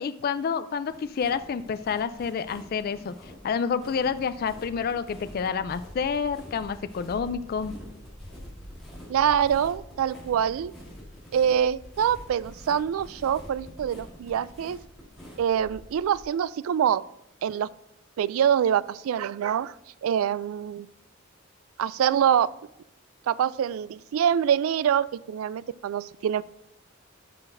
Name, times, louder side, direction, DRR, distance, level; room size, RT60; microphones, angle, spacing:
voice 1, 0.0-7.7, left 6 dB, 45° left, 12 dB, 0.3 m, -29 dB
sound 1, 0.9-16.2, equal, ahead, 2.6 m, -46 dB
voice 2, 9.1-10.7 11.3-14.8 15.4-17.0 17.4-17.7 18.2-19.8 20.0-20.9 21.8-22.5 23.3-26.4, right 9 dB, 80° right, 18 dB, 0.3 m, -25 dB
13.5 x 5.8 x 2.6 m, 0.82 s
head